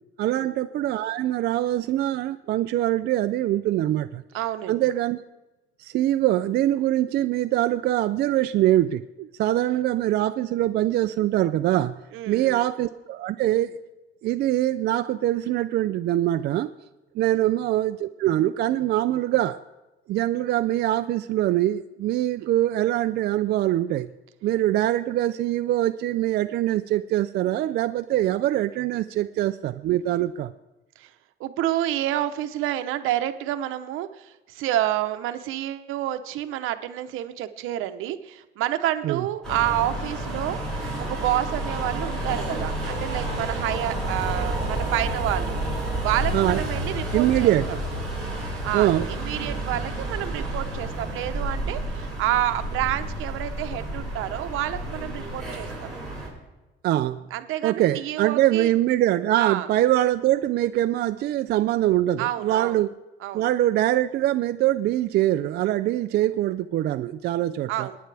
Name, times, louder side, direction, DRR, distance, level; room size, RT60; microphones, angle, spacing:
voice 1, 0.2-4.2 4.7-5.2 5.8-12.0 12.3-13.8 14.2-16.7 17.1-19.6 20.1-24.1 24.4-30.5 39.0-39.2 46.3-46.6 47.1-47.8 48.7-49.1 56.8-57.3 57.6-62.9 63.3-67.9, right 14 dB, 55° right, 9 dB, 0.4 m, -23 dB
voice 2, 4.3-4.8 12.1-12.6 17.3-17.5 31.0-31.1 31.4-40.6 41.0-45.5 46.0-47.5 48.6-55.9 57.3-58.7 59.4-59.7 62.2-62.8 63.2-63.5 67.7-68.0, right 13 dB, 80° right, 10 dB, 0.9 m, -29 dB
sound 1, 39.4-56.3, right 1 dB, 5° left, 5.2 m, -30 dB
27.5 x 9.4 x 3.4 m, 1.1 s
cardioid pair, 165°, 21 cm